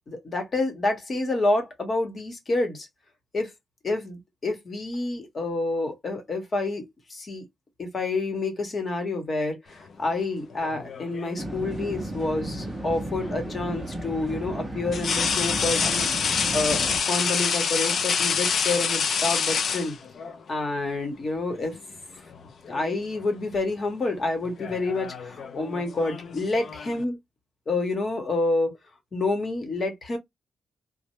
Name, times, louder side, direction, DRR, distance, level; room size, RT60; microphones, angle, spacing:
voice 1, 0.1-2.9 3.3-3.5 3.8-7.4 7.8-16.1 16.5-20.0 20.5-21.8 22.2-22.3 22.7-27.2 27.7-28.8 29.1-30.2, left 2 dB, 35° left, 0.9 m, -28 dB
sound 1, 10.6-11.5 13.2-13.4 14.9-20.4 21.6-21.8 22.2-22.9 23.2-23.6 24.4-27.0, left 6 dB, 55° left, 0.3 m, -27 dB
sound 2, 11.4-17.0, right 1 dB, 10° right, 0.5 m, -34 dB
3.1 x 2.1 x 2.9 m
wide cardioid pair, 170°, 0 cm